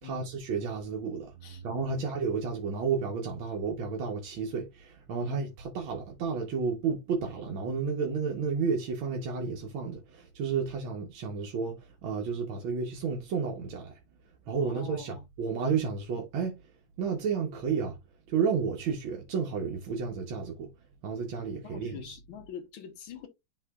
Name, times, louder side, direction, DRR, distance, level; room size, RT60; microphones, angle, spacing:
voice 1, 0.0-14.0 14.5-16.6 17.0-18.0 18.3-20.7 21.0-22.2, right 5 dB, 90° right, 1.9 m, -32 dB
voice 2, 14.6-15.2 21.6-23.3, left 7 dB, 85° left, 1.9 m, -45 dB
11.0 x 3.7 x 2.3 m
omnidirectional pair, 2.1 m